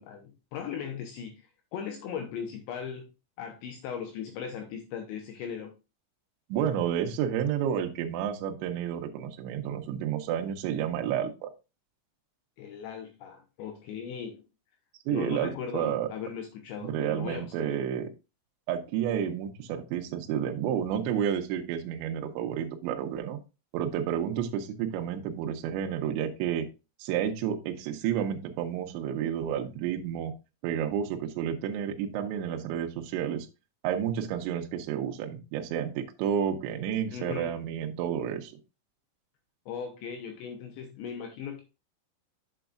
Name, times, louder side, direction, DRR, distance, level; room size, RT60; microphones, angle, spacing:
voice 1, 0.0-1.4 1.7-3.1 3.4-5.8 12.6-14.4 15.1-17.7 37.1-37.6 39.7-41.6, left 7 dB, 80° left, 4 dB, 2.8 m, -38 dB
voice 2, 6.5-11.5 15.1-16.1 16.8-18.1 18.7-23.4 23.7-26.7 27.0-30.3 30.6-33.5 33.8-38.5, right 9 dB, 75° right, 3 dB, 2.9 m, -30 dB
8.1 x 8.0 x 2.5 m, 0.28 s
omnidirectional pair, 6.0 m